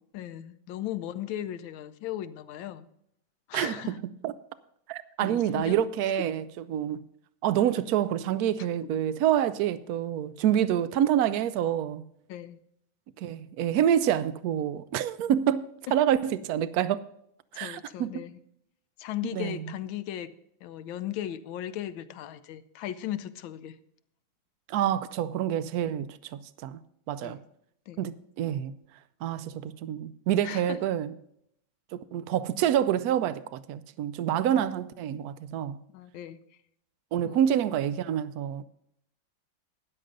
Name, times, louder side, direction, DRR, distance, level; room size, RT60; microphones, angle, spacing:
voice 1, 0.1-2.9 3.5-4.0 5.2-5.9 6.2-6.3 12.3-12.6 15.9-16.0 17.5-18.4 19.0-20.3 20.6-23.8 27.2-27.4 27.9-28.0 30.4-30.8 34.5-34.6 35.9-36.4 37.2-37.4, left 12 dB, 85° left, 1.5 m, -37 dB
voice 2, 3.5-4.0 4.2-4.3 4.9-6.4 6.7-7.0 7.4-12.0 13.2-17.0 17.5-18.3 19.3-19.6 24.7-26.8 27.1-27.4 28.0-28.7 29.2-31.1 31.9-35.8 37.1-38.6, right 10 dB, 80° right, 0.8 m, -27 dB
13.0 x 10.0 x 3.8 m
omnidirectional pair, 2.1 m